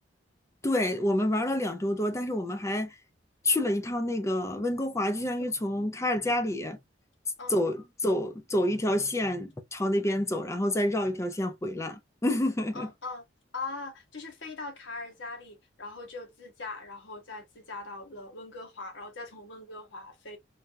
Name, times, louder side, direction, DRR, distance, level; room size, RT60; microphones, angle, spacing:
voice 1, 0.6-2.9 3.4-6.8 7.5-12.9, left 1 dB, 15° left, 0.4 m, -28 dB
voice 2, 12.7-13.2 13.5-20.4, left 3 dB, 80° left, 1.0 m, -41 dB
3.3 x 2.3 x 2.5 m
head